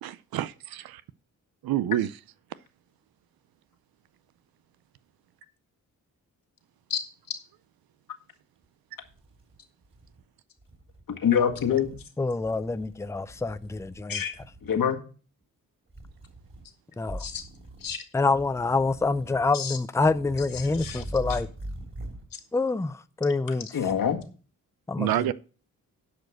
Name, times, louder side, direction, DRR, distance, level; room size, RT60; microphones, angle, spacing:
voice 1, 0.0-1.0 1.6-2.1 25.0-25.3, right 13 dB, 85° right, 0.6 m, -28 dB
sound 1, 8.6-8.7 9.1-10.2 10.6-11.0 11.5-12.1 12.4-14.0 14.3-14.8 15.9-16.7 17.0-18.0 18.3-19.5 19.9-22.3, right 1 dB, 35° right, 3.6 m, -42 dB
voice 2, 11.1-11.9 14.1-14.3 14.6-15.0 17.2-17.4 17.8-18.0 19.5-19.8 20.5-21.0 21.3-21.4 22.3-22.4 23.7-24.2, left 8 dB, 70° left, 1.8 m, -26 dB
voice 3, 12.2-14.2 17.0-17.2 18.1-21.5 22.5-23.7 24.9-25.3, left 3 dB, 10° left, 0.5 m, -26 dB
10.5 x 5.2 x 6.3 m
cardioid pair, 60°, 35 cm